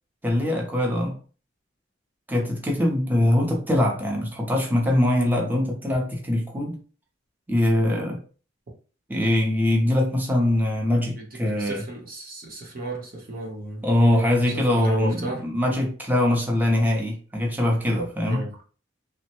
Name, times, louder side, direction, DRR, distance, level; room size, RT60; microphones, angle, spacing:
voice 1, 0.2-1.2 2.3-6.8 7.5-8.2 9.1-11.8 13.8-18.4, left 1 dB, 10° right, -1 dB, 0.6 m, -22 dB
voice 2, 11.6-13.8 14.5-15.4 17.9-18.5, right 1 dB, 50° right, -1 dB, 0.9 m, -32 dB
3.0 x 2.1 x 2.9 m, 0.38 s
head